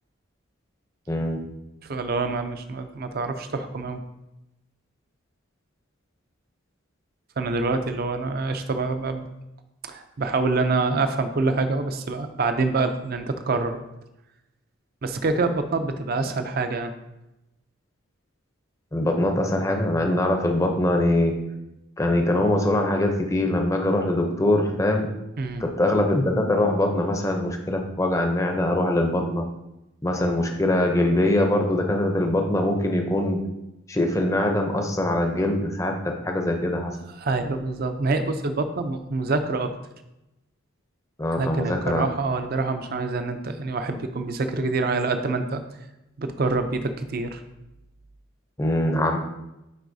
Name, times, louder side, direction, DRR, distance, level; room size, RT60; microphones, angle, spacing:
voice 1, 1.1-1.4 18.9-21.4 22.0-25.1 25.6-29.5 30.0-33.4 33.9-37.0 41.2-42.1 48.6-49.2, left 1 dB, 15° left, 3 dB, 0.5 m, -23 dB
voice 2, 1.8-4.0 7.4-9.3 9.9-13.8 15.0-16.9 25.4-25.6 37.2-39.7 41.4-45.6 46.2-47.4, right 3 dB, 45° right, 8 dB, 0.4 m, -26 dB
9.4 x 3.9 x 2.6 m, 0.92 s
head